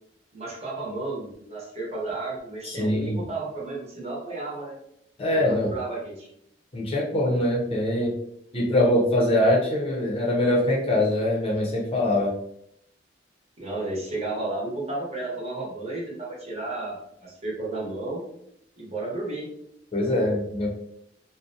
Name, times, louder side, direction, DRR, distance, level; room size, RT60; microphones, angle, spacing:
voice 1, 0.3-4.7 5.3-6.3 7.3-7.4 13.6-18.2 18.8-19.5, right 2 dB, 35° right, -4 dB, 0.8 m, -33 dB
voice 2, 2.6-3.2 5.2-5.8 6.7-8.1 8.5-12.3 19.9-20.7, left 1 dB, 30° left, -3 dB, 0.5 m, -23 dB
2.5 x 2.0 x 2.6 m, 0.74 s
head